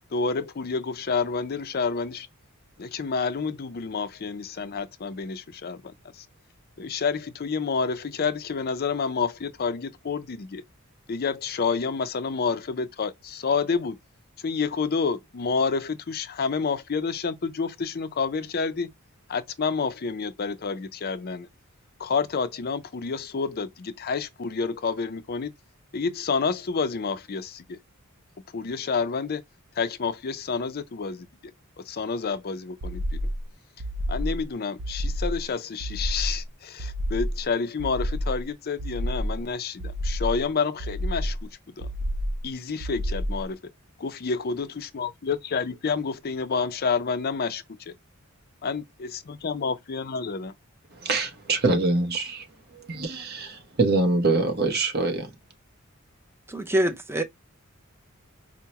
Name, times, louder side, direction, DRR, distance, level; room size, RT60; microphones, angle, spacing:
voice 1, 0.1-2.3 2.8-6.3 6.8-10.6 11.1-14.0 14.4-18.9 19.3-21.5 22.0-25.5 25.9-27.8 28.5-29.4 29.8-31.3 31.9-33.2 34.1-41.4 41.8-41.9 42.4-43.6 44.0-47.9 48.6-50.5, left 5 dB, 45° left, 0.5 m, -29 dB
sound 1, 32.8-33.4 33.8-34.4 34.8-35.4 35.8-36.4 36.8-37.4 37.8-38.4 38.8-39.4 39.8-40.4 40.8-41.4 41.8-42.4 42.8-43.4, equal, 75° right, 0.6 m, -29 dB
voice 2, 50.9-52.5 52.7-55.3, right 3 dB, 50° right, 0.9 m, -24 dB
voice 3, 56.5-57.2, right 1 dB, 10° right, 0.6 m, -25 dB
4.6 x 2.1 x 2.8 m
head